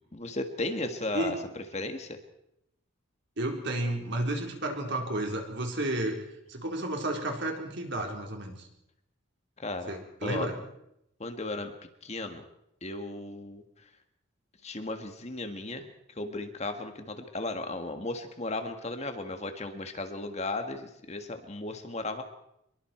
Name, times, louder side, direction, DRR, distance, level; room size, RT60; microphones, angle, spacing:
voice 1, 0.1-2.2 9.6-9.9 10.2-10.5 11.2-11.7 12.0-12.4 12.8-13.6 14.6-15.9 16.2-22.2, left 2 dB, 30° left, 6 dB, 1.7 m, -35 dB
voice 2, 3.4-6.2 6.5-8.7 9.9-10.6, right 1 dB, 55° right, 2 dB, 4.2 m, -32 dB
26.0 x 22.5 x 4.5 m, 0.79 s
head